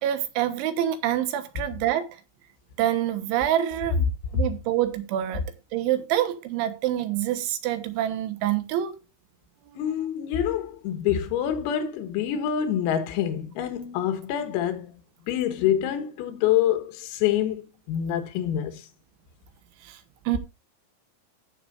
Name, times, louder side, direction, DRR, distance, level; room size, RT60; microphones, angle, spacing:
voice 1, 0.0-2.1 2.8-4.1 4.3-5.4 5.7-9.0 19.8-20.0 20.3-20.4, right 12 dB, 70° right, 3.4 m, -26 dB
voice 2, 9.8-14.9 15.3-18.9, left 10 dB, 90° left, 4.2 m, -26 dB
16.5 x 6.9 x 2.6 m
omnidirectional pair, 6.0 m